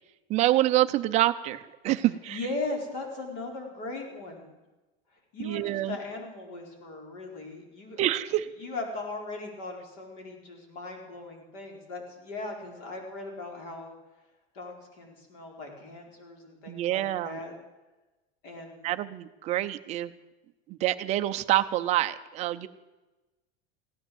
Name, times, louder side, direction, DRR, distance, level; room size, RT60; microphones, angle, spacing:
voice 1, 0.3-2.4 5.4-6.0 8.0-8.5 16.7-17.4 18.8-20.1 20.7-22.7, right 15 dB, 20° right, 9 dB, 0.4 m, -26 dB
voice 2, 2.3-4.5 5.3-8.0 8.6-14.0 14.5-17.5 18.4-18.9, left 2 dB, 55° left, 1 dB, 4.5 m, -38 dB
16.0 x 10.5 x 7.8 m, 1.1 s
supercardioid pair, 175°, 32 cm